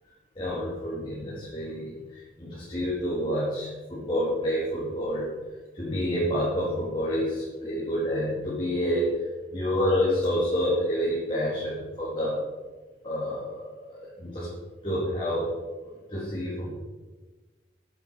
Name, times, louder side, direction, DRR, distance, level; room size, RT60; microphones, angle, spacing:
voice 1, 0.4-5.3 5.7-9.1 9.5-12.4 13.0-14.5 14.8-15.5 15.8-16.7, equal, 25° left, -8 dB, 2.1 m, -28 dB
8.2 x 7.9 x 4.5 m, 1.3 s
head